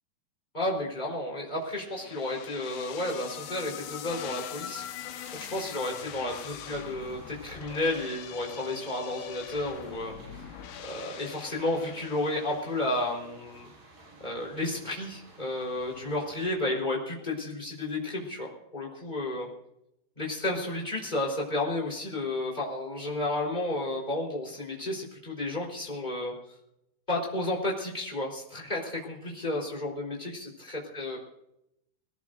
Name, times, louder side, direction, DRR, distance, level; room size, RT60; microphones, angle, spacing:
voice 1, 0.5-4.8 5.3-10.1 10.8-13.7 14.2-19.5 20.2-26.3 27.1-31.2, left 2 dB, 10° left, -2 dB, 3.7 m, -32 dB
sound 1, 1.7-13.0, left 11 dB, 80° left, 2.8 m, -43 dB
sound 2, 3.3-16.5, right 2 dB, 55° right, 7.6 m, -53 dB
21.5 x 19.5 x 2.6 m, 0.81 s
omnidirectional pair, 5.0 m